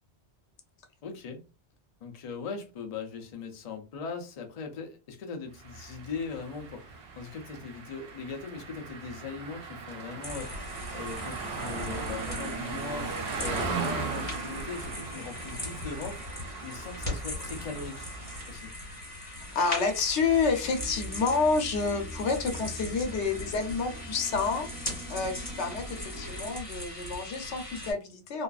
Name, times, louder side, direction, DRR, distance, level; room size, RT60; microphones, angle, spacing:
voice 1, 1.0-1.4 2.0-16.2 16.6-18.1 18.5-18.7, left 5 dB, 50° left, 0.5 m, -40 dB
sound 1, 5.6-18.6, right 4 dB, 70° right, 0.9 m, -38 dB
sound 2, 10.2-27.9, left 1 dB, 35° left, 1.6 m, -40 dB
voice 2, 19.5-24.7 25.1-28.4, left 4 dB, 85° left, 0.9 m, -29 dB
sound 3, 20.2-26.6, right 1 dB, 30° right, 0.6 m, -44 dB
2.4 x 2.4 x 2.3 m
omnidirectional pair, 1.1 m